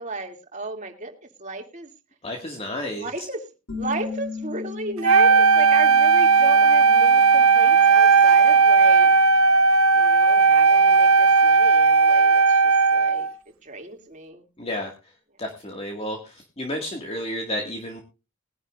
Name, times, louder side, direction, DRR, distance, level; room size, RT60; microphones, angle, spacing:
voice 1, 0.0-1.9 3.0-3.5 3.7-9.1 9.9-14.9, right 3 dB, 35° right, 3 dB, 2.7 m, -34 dB
voice 2, 2.2-3.0 14.6-14.9 15.4-18.0, left 1 dB, 30° left, 2 dB, 2.0 m, -31 dB
sound 1, 3.7-9.1, left 5 dB, 75° left, 2.8 m, -38 dB
Wind instrument woodwind instrument, 5.0-13.3, right 5 dB, 85° right, 0.9 m, -16 dB
21.0 x 11.0 x 2.5 m, 0.29 s
head